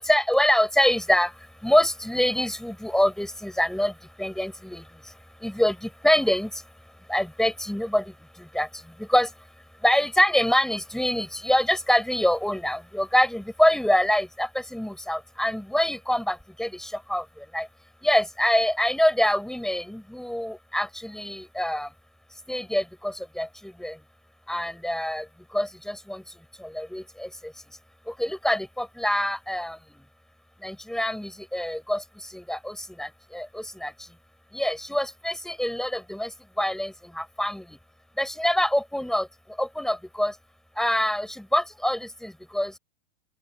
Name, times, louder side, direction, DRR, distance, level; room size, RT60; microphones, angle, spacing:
voice 1, 0.0-6.6 7.1-9.3 9.8-17.7 18.0-21.9 22.5-24.0 24.5-26.2 26.6-27.8 28.1-30.1 30.6-34.1 34.5-37.8 38.2-40.4 40.7-42.8, left 1 dB, ahead, 5.8 m, -25 dB
open air
supercardioid pair, 150°, 33 cm